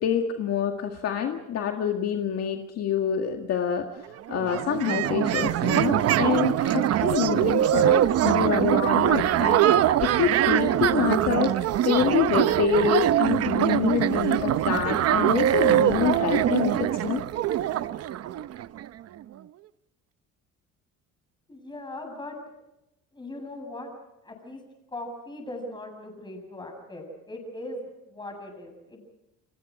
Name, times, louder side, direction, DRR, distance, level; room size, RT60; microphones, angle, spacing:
voice 1, 0.0-9.7 10.0-17.2, left 8 dB, 55° left, 3 dB, 2.0 m, -27 dB
sound 1, 4.0-4.1 4.3-18.9, right 12 dB, 55° right, 0.8 m, -23 dB
voice 2, 21.5-22.4 23.1-23.9 24.2-24.6 24.9-29.1, left 1 dB, 15° left, 4 dB, 7.6 m, -39 dB
30.0 x 23.5 x 4.9 m, 0.90 s
cardioid pair, 135°, 30 cm